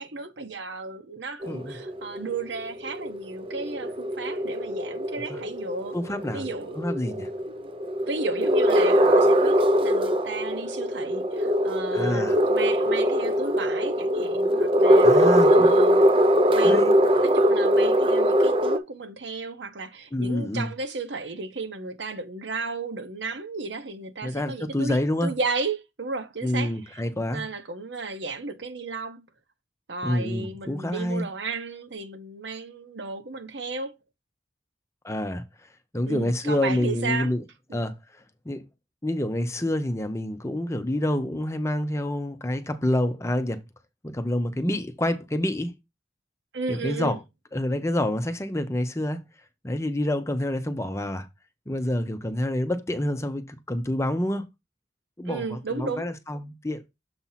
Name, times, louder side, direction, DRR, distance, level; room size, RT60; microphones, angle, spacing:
voice 1, 0.0-6.0 6.3-6.8 7.5-7.7 8.1-16.1 16.5-27.0 27.3-29.2 29.9-34.0 36.1-37.3 37.7-37.9 46.5-47.2 55.3-56.1, right 3 dB, 80° right, 0.9 m, -34 dB
sound 1, 1.4-18.8, equal, 30° right, 0.5 m, -22 dB
voice 2, 1.5-1.8 5.3-5.4 5.9-6.5 6.8-7.3 11.9-12.4 15.0-15.7 16.6-16.9 20.1-20.7 24.2-25.3 26.4-27.5 30.0-31.3 35.0-35.4 35.9-37.4 37.7-38.0 38.5-38.6 39.0-43.6 44.0-45.7 46.7-47.2 47.5-49.2 49.6-51.3 51.7-54.4 55.2-56.8, left 1 dB, 15° left, 0.7 m, -27 dB
7.1 x 2.8 x 5.7 m
head